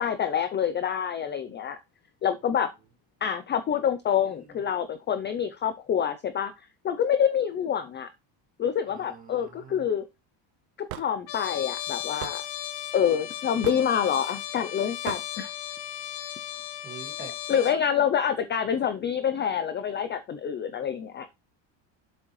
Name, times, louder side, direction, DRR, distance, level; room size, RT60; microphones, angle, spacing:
voice 1, 0.0-1.8 2.2-2.7 3.2-6.5 6.8-8.1 8.6-10.0 10.9-12.4 12.9-15.5 17.5-21.3, left 8 dB, 25° left, 0.5 m, -27 dB
voice 2, 4.1-4.6 8.9-9.8 16.8-17.4, right 6 dB, 20° right, 2.0 m, -46 dB
Hammer / Wood, 10.9-11.1 12.2-12.4 13.6-13.9 15.1-15.3, right 16 dB, 75° right, 0.7 m, -36 dB
Trumpet, 11.3-17.8, left 12 dB, 70° left, 1.6 m, -36 dB
7.6 x 6.2 x 3.1 m
cardioid pair, 160°, 47 cm